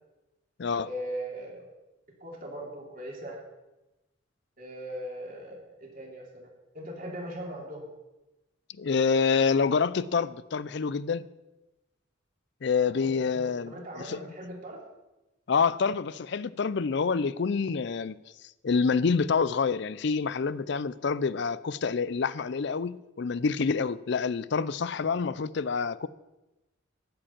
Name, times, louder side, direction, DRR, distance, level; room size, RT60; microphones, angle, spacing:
voice 1, 0.7-1.6 2.2-3.4 4.6-6.5 6.7-7.9 12.8-14.8, equal, 45° right, 3.0 m, -39 dB
voice 2, 8.8-11.3 12.6-14.2 15.5-18.1 18.6-26.1, left 5 dB, 55° left, 0.4 m, -27 dB
13.0 x 5.2 x 8.7 m
head